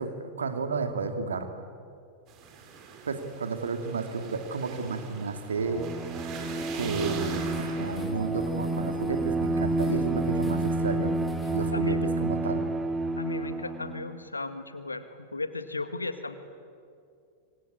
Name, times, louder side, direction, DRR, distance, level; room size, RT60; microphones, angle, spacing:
voice 1, 0.0-1.5 3.0-5.9 6.7-11.1 11.5-12.6, right 4 dB, 70° right, 7 dB, 2.6 m, -32 dB
sound 1, 2.3-8.1, right 6 dB, 35° right, 4.3 m, -43 dB
Bowed string instrument, 5.6-14.1, right 2 dB, 15° right, 2.2 m, -30 dB
sound 2, 6.6-11.7, left 1 dB, 5° left, 3.7 m, -47 dB
voice 2, 11.7-12.1 13.2-16.3, left 3 dB, 80° left, 11 dB, 1.8 m, -35 dB
26.0 x 25.5 x 8.8 m, 2.4 s
figure-of-eight pair, 90°, 0 cm